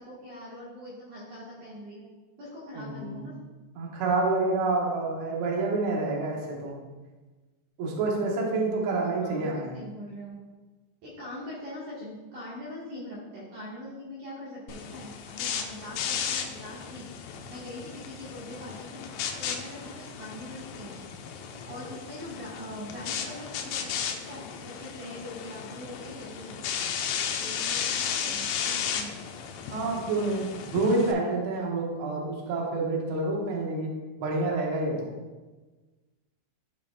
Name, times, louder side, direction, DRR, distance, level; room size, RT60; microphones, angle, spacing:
voice 1, 0.0-2.0 2.4-3.3 9.2-10.4 11.0-17.1 17.5-19.0 19.4-21.0 21.7-26.7 27.4-29.2, left 1 dB, 55° right, -8 dB, 2.4 m, -42 dB
voice 2, 2.7-3.2 3.7-6.7 7.8-9.7 29.7-33.9 34.2-35.1, right 3 dB, 75° right, -2 dB, 1.7 m, -28 dB
sound 1, 14.7-31.1, left 7 dB, 85° left, 2.7 m, -34 dB
14.5 x 5.2 x 2.4 m, 1.2 s
omnidirectional pair, 5.8 m